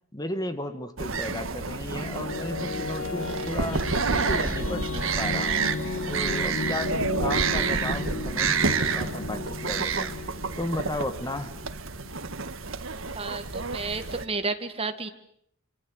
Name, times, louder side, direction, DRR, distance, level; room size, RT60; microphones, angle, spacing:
voice 1, 0.1-5.6 6.1-10.1 10.6-11.5, left 1 dB, 20° left, 9 dB, 1.7 m, -34 dB
sound 1, 1.0-14.2, right 4 dB, 65° right, 1.6 m, -29 dB
sound 2, 1.6-12.3, left 3 dB, 70° left, 1.9 m, -35 dB
voice 2, 13.2-15.1, right 3 dB, 25° right, 8 dB, 1.8 m, -31 dB
26.0 x 25.5 x 8.0 m, 0.71 s
head